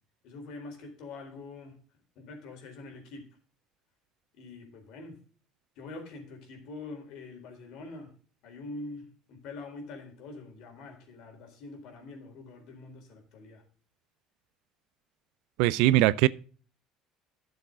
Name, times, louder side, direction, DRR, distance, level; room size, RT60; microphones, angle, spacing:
voice 1, 0.2-1.8 2.2-3.3 4.4-5.2 5.8-8.1 8.4-13.6, left 3 dB, 70° left, 4.1 m, -44 dB
voice 2, 15.6-16.3, right 16 dB, 80° right, 0.5 m, -21 dB
12.5 x 7.1 x 3.8 m
cardioid pair, 110°, 0 cm